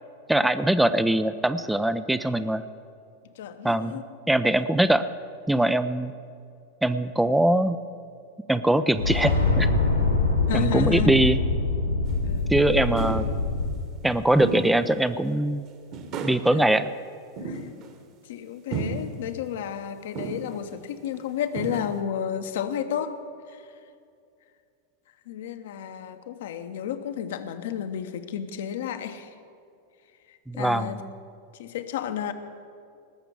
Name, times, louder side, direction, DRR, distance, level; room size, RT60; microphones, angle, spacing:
voice 1, 0.3-2.7 3.6-5.1 5.5-6.1 6.8-7.8 8.5-9.7 10.5-11.4 12.5-13.3 14.0-15.7 16.2-16.9 30.5-30.9, right 1 dB, 5° right, 12 dB, 0.4 m, -22 dB
voice 2, 3.3-4.0 10.5-11.1 12.2-12.6 16.5-16.6 17.4-17.8 18.2-23.2 23.5-23.7 25.3-29.3 30.3-31.0 31.5-32.3, left 9 dB, 55° left, 9 dB, 0.9 m, -32 dB
sound 1, 8.9-13.7, left 3 dB, 80° left, 2.9 m, -24 dB
sound 2, 12.1-12.2 12.9-13.3 14.4-14.8 15.2-15.3 15.9-16.5 17.4-18.0 18.7-19.2 20.1-20.6 21.1-21.2 21.5-22.0, right 4 dB, 40° right, 1.5 m, -33 dB
18.5 x 6.8 x 8.1 m, 2.4 s
figure-of-eight pair, 90°, 0 cm